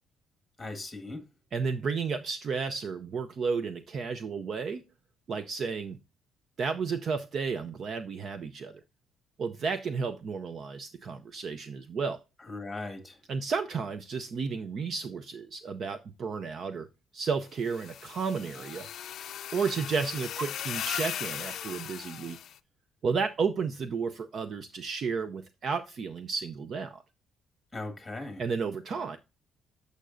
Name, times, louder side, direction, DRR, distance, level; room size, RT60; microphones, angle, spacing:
voice 1, 0.6-1.2 12.5-13.2 27.7-28.4, left 2 dB, 10° left, 1.7 m, -38 dB
voice 2, 1.5-4.8 5.3-6.0 6.6-8.8 9.4-12.2 13.3-16.9 17.1-18.9 19.5-22.4 23.0-27.0 28.4-29.2, right 5 dB, 40° right, 0.5 m, -32 dB
sound 1, 17.6-22.5, left 10 dB, 55° left, 0.5 m, -38 dB
11.5 x 6.5 x 2.6 m
cardioid pair, 155°, 0 cm